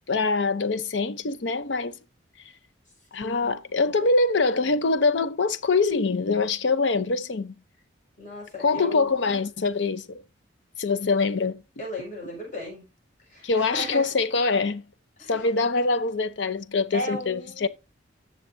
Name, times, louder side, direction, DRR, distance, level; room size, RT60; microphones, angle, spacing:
voice 1, 0.1-2.0 3.1-7.5 8.6-10.2 10.8-11.6 13.4-14.8 15.3-17.7, left 3 dB, 65° left, 0.6 m, -24 dB
voice 2, 3.1-3.9 8.2-9.5 11.8-12.8 13.3-14.1 15.2-15.4 16.9-17.7, left 1 dB, 40° left, 5.5 m, -36 dB
15.5 x 6.5 x 2.6 m
head